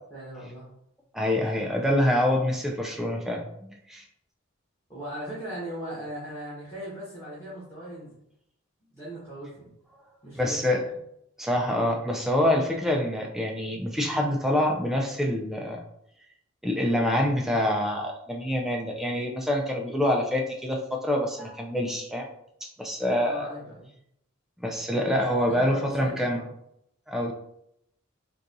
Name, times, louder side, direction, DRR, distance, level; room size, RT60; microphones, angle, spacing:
voice 1, 0.1-0.7 4.9-8.1 8.9-9.7 10.2-10.9 23.2-23.9 25.4-26.5, equal, 15° left, -10 dB, 1.1 m, -38 dB
voice 2, 1.1-3.4 3.9-4.0 10.4-10.8 11.4-15.8 16.6-22.2 22.6-23.5 24.6-26.4 27.1-27.3, left 1 dB, ahead, 0 dB, 0.3 m, -26 dB
3.9 x 2.3 x 2.6 m, 0.75 s
head